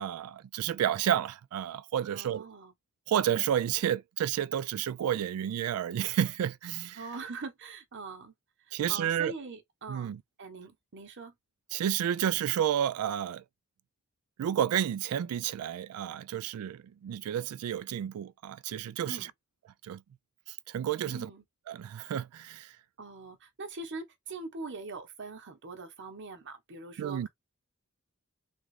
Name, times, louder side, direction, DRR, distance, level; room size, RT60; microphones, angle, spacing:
voice 1, 0.0-2.5 3.1-7.0 8.7-9.3 9.9-10.2 11.7-13.4 14.4-19.3 19.8-20.0 20.5-21.3 21.7-22.7 27.0-27.3, right 10 dB, 85° right, 0.3 m, -31 dB
voice 2, 2.1-2.7 7.0-8.3 8.7-11.3 19.1-19.3 21.1-21.4 23.0-27.3, right 3 dB, 55° right, 0.9 m, -42 dB
3.6 x 2.4 x 3.2 m
head